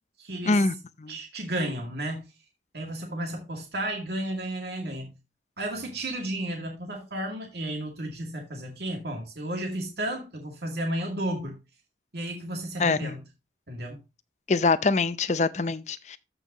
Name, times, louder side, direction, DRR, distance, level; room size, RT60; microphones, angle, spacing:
voice 1, 0.2-0.7 1.1-2.3 2.7-5.2 5.6-11.6 12.1-13.2 13.7-14.0, right 1 dB, 65° right, 2.2 m, -33 dB
voice 2, 12.8-13.2 14.5-16.2, left 3 dB, 40° left, 0.6 m, -24 dB
14.0 x 5.5 x 2.9 m
head